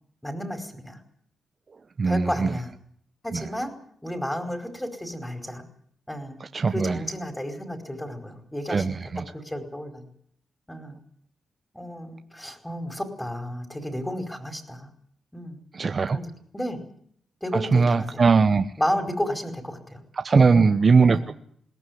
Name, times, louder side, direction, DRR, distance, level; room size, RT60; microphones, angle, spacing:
voice 1, 0.2-1.0 2.0-2.7 3.2-3.7 4.0-5.6 6.1-6.4 6.7-10.0 10.7-11.0 11.7-14.9 15.3-15.6 16.1-16.8 17.4-18.2 18.8-20.0 20.3-20.7 21.1-21.3, equal, 5° left, 7 dB, 4.9 m, -32 dB
voice 2, 2.0-2.5 6.5-7.0 8.7-9.2 15.7-16.2 17.7-18.7 20.2-21.3, right 4 dB, 45° right, 8 dB, 1.1 m, -20 dB
21.5 x 18.0 x 9.5 m, 0.66 s
cardioid pair, 85°, 0 cm